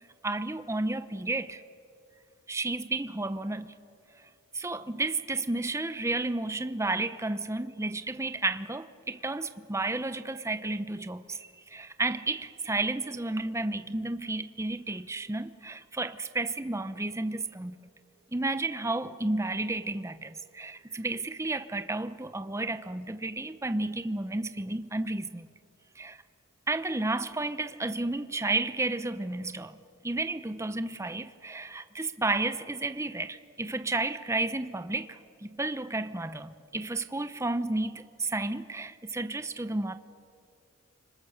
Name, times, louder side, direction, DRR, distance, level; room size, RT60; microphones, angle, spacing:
voice 1, 0.2-1.6 2.5-3.7 4.5-11.4 11.7-17.9 18.3-25.3 26.0-26.2 26.7-29.7 30.0-35.1 35.4-39.9, right 2 dB, 15° right, 0.7 m, -32 dB
30.0 x 25.5 x 6.6 m
head